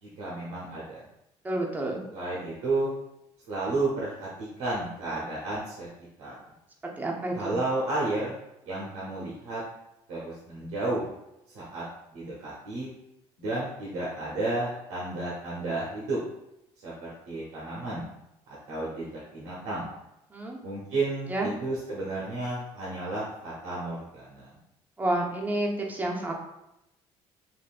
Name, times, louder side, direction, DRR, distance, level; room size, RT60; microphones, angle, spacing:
voice 1, 0.0-1.0 2.1-2.9 3.5-5.9 6.2-6.4 7.3-8.4 8.7-9.6 10.1-11.1 11.5-11.8 12.1-12.9 13.4-16.2 16.8-18.1 18.5-19.9 20.6-24.5, right 2 dB, 90° right, -6 dB, 0.8 m, -32 dB
voice 2, 1.4-2.0 6.8-7.6 20.3-20.6 21.3-21.5 25.0-26.3, right 1 dB, 15° right, -1 dB, 0.6 m, -29 dB
3.5 x 2.6 x 2.4 m, 0.87 s
cardioid pair, 115°, 11 cm